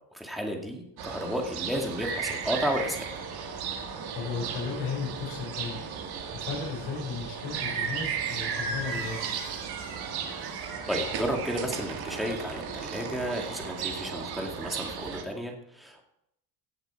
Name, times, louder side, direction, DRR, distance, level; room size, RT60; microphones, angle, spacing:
voice 1, 0.1-3.1 10.9-16.0, equal, ahead, 0 dB, 2.3 m, -32 dB
sound 1, 1.0-15.2, right 6 dB, 60° right, 2.1 m, -35 dB
voice 2, 4.1-5.9 6.3-9.4, left 5 dB, 65° left, -1 dB, 5.2 m, -35 dB
Squeak, 7.6-14.4, right 6 dB, 80° right, 3.0 m, -44 dB
16.5 x 8.0 x 4.6 m, 0.78 s
cardioid pair, 145°, 43 cm